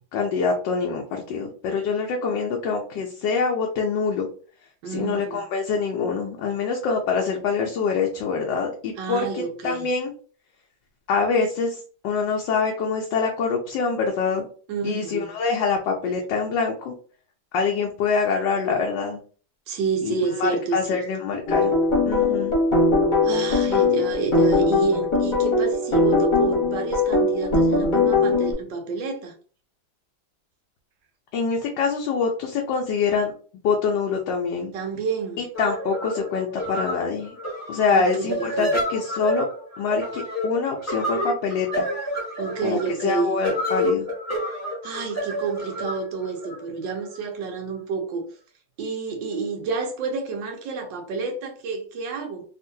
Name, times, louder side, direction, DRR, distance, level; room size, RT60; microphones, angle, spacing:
voice 1, 0.1-4.3 4.8-10.1 11.1-14.5 14.8-16.9 17.5-19.2 20.0-20.1 20.4-21.7 22.1-22.6 31.3-33.3 33.6-34.7 35.4-37.4 37.7-39.5 39.8-41.8 42.6-44.1, left 5 dB, 75° left, 1.3 m, -25 dB
voice 2, 4.8-5.4 9.0-9.9 14.7-15.3 19.7-21.0 23.2-29.3 34.7-35.4 37.9-38.7 42.4-43.3 44.8-48.3 48.8-52.4, right 5 dB, 75° right, 1.4 m, -29 dB
sound 1, 21.5-28.5, left 3 dB, 30° left, 1.0 m, -20 dB
sound 2, 35.5-47.2, equal, 15° left, 0.6 m, -29 dB
3.6 x 2.4 x 2.6 m
omnidirectional pair, 2.0 m